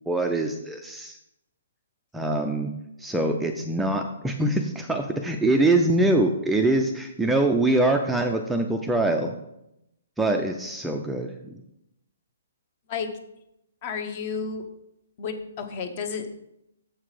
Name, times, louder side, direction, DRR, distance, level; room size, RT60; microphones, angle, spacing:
voice 1, 0.1-1.2 2.1-2.7 3.0-9.3 10.2-11.5, right 2 dB, 5° right, 3 dB, 0.4 m, -24 dB
voice 2, 13.8-14.6 15.2-16.4, left 5 dB, 35° left, 7 dB, 0.9 m, -31 dB
7.3 x 5.8 x 4.9 m, 0.84 s
hypercardioid pair, 160°, 0 cm